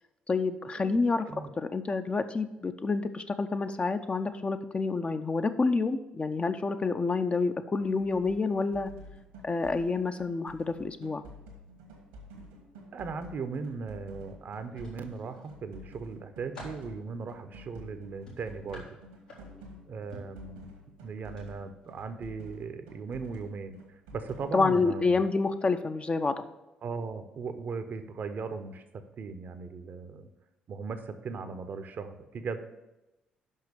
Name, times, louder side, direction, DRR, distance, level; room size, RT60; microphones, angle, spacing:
voice 1, 0.3-1.3 1.6-8.9 9.4-11.2 24.5-26.4, left 4 dB, 30° left, 9 dB, 0.5 m, -28 dB
sound 1, 7.8-24.9, equal, 80° right, 1.4 m, -50 dB
voice 2, 12.9-19.0 19.9-20.6 21.0-25.2 26.8-28.8 29.2-30.3 30.7-32.6, right 4 dB, 50° right, 10 dB, 0.7 m, -38 dB
sound 2, 14.7-15.5 16.0-16.9 18.3-19.7 20.1-20.4 21.3-21.5 21.8-22.0, left 1 dB, 85° left, 1.9 m, -48 dB
5.8 x 5.5 x 6.7 m, 0.99 s
figure-of-eight pair, 45°, 4 cm